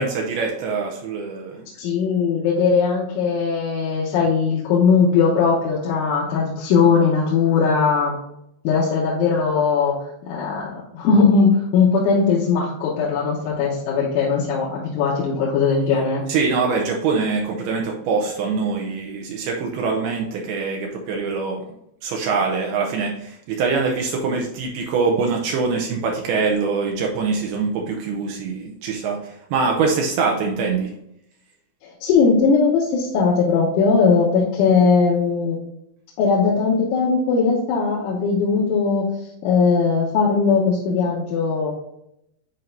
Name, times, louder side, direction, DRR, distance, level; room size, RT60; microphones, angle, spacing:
voice 1, 0.0-1.6 16.3-21.6 22.0-29.2 29.5-30.9, right 4 dB, 85° right, 1 dB, 2.2 m, -23 dB
voice 2, 1.8-8.2 8.7-9.9 10.3-16.2 32.0-35.6 36.2-39.1 39.4-41.7, left 5 dB, 90° left, -6 dB, 3.5 m, -19 dB
10.5 x 4.4 x 2.6 m, 0.78 s
omnidirectional pair, 5.3 m